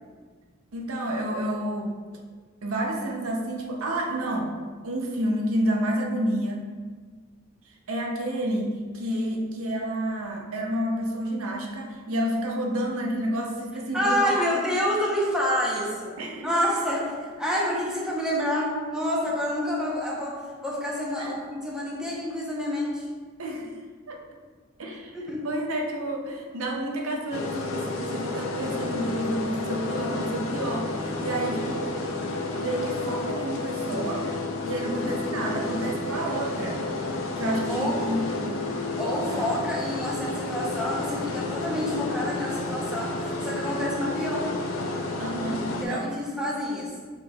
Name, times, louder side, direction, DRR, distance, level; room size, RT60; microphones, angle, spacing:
voice 1, 0.7-1.9 2.6-4.5 4.8-6.6 7.9-14.4 16.2-16.9 21.2-21.3 23.4-23.7 24.1-24.2 24.8-25.2 25.4-32.0 32.6-34.3 34.6-36.8 37.4-38.6 39.3-39.5 45.2-46.5, right 1 dB, 85° right, 0 dB, 0.7 m, -30 dB
voice 2, 13.9-16.2 16.4-23.1 25.1-25.5 34.8-35.1 37.7-38.0 39.0-44.5 45.8-47.0, equal, 5° right, -5 dB, 0.8 m, -28 dB
sound 1, 27.3-45.8, left 2 dB, 70° left, 0.6 m, -31 dB
5.0 x 4.3 x 2.3 m, 1.5 s
head